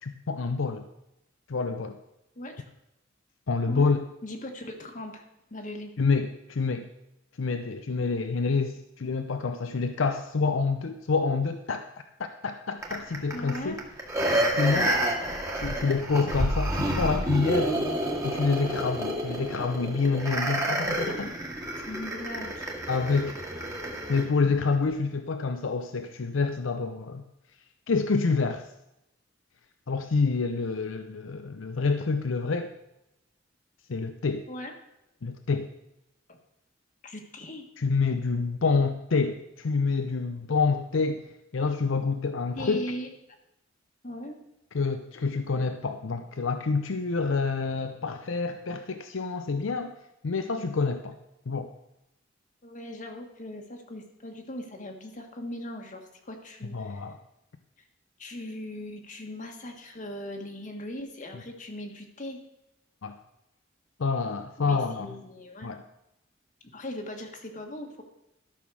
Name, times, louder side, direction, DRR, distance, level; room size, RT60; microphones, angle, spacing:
voice 1, 0.0-0.9 1.5-2.0 3.5-4.0 6.0-6.9 7.4-11.9 12.2-13.8 14.6-14.9 15.5-17.8 18.2-21.3 22.9-23.4 24.1-27.2 27.9-28.7 29.9-32.7 33.9-34.5 35.2-35.7 37.8-42.9 44.7-49.9 50.2-51.2 51.5-51.7 56.7-57.2 63.0-63.2 64.0-65.2 65.6-65.8, left 4 dB, 85° left, 8 dB, 0.6 m, -27 dB
voice 2, 4.2-5.2 5.5-5.9 13.3-13.8 21.9-22.7 34.5-34.7 37.0-37.7 42.6-43.1 44.0-44.4 52.6-57.0 58.2-62.4 64.6-65.7 66.7-68.0, left 1 dB, 40° left, 3 dB, 1.5 m, -39 dB
sound 1, 12.8-24.3 24.7-24.8, right 1 dB, 15° right, 1.8 m, -29 dB
13.0 x 6.2 x 6.2 m, 0.88 s
head